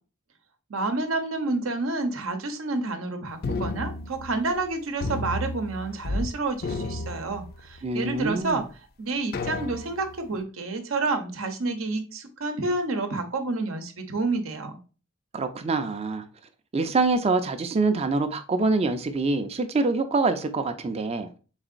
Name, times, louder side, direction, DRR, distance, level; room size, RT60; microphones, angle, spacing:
voice 1, 0.7-8.7 9.0-14.8, right 3 dB, 80° right, 0.8 m, -29 dB
sound 1, 3.4-4.7 5.0-6.3 6.6-7.9 8.4-8.5 9.3-10.2, left 2 dB, 45° left, 0.4 m, -32 dB
voice 2, 7.8-8.6 15.3-16.2 16.7-21.4, right 3 dB, 30° right, 0.4 m, -25 dB
4.0 x 3.7 x 2.4 m
head